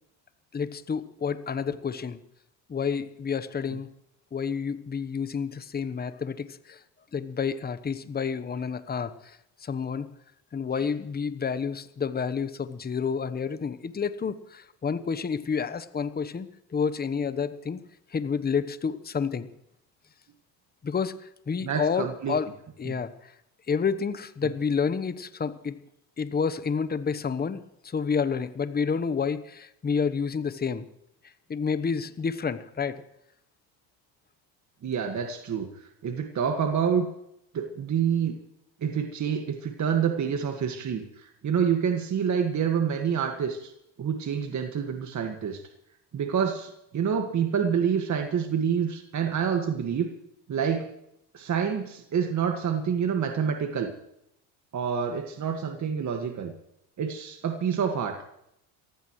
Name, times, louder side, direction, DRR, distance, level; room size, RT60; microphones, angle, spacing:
voice 1, 0.5-2.2 2.7-3.9 4.3-6.8 7.1-10.1 10.5-17.8 18.1-19.5 20.8-22.5 22.8-23.3 23.7-25.8 26.2-30.8 31.2-33.0, left 6 dB, 20° left, 13 dB, 1.1 m, -29 dB
voice 2, 21.6-22.4 22.9-23.0 34.8-35.7 36.0-37.1 37.5-38.3 38.8-43.7 44.0-45.6 46.1-50.1 50.5-50.9 51.3-53.9 54.7-56.5 57.0-58.2, right 7 dB, 35° right, 5 dB, 1.9 m, -27 dB
29.5 x 15.0 x 3.2 m, 0.78 s
hypercardioid pair, 80°, 47 cm